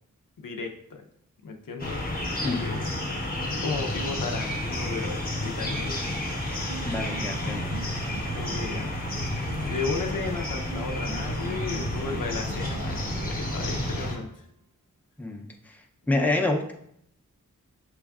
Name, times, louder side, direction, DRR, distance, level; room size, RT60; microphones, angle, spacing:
voice 1, 0.4-1.0 1.4-2.9 3.4-6.1 7.4-7.6 8.3-8.9 9.3-14.4, left 4 dB, 80° left, 3 dB, 0.6 m, -35 dB
sound 1, 1.8-14.2, left 1 dB, 30° left, 0.8 m, -31 dB
Piano, 6.5-14.5, right 5 dB, 70° right, 0.5 m, -39 dB
voice 2, 6.8-7.7 15.2-15.8 16.1-16.7, left 2 dB, 5° left, 2 dB, 0.5 m, -27 dB
6.0 x 2.3 x 3.5 m, 0.71 s
wide cardioid pair, 75°, 32 cm